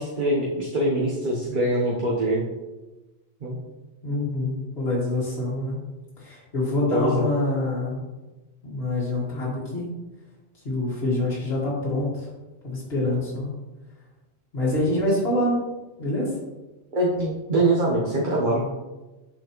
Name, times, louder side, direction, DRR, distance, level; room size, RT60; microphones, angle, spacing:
voice 1, 0.0-2.4 3.4-3.6 6.9-7.2 16.9-18.7, right 1 dB, 50° right, -4 dB, 1.1 m, -23 dB
voice 2, 4.0-5.8 6.2-8.0 8.6-9.9 10.6-12.3 12.6-13.5 14.5-15.6 16.0-16.4, left 1 dB, 65° left, -7 dB, 2.0 m, -26 dB
9.3 x 4.3 x 3.0 m, 1.1 s
omnidirectional pair, 1.1 m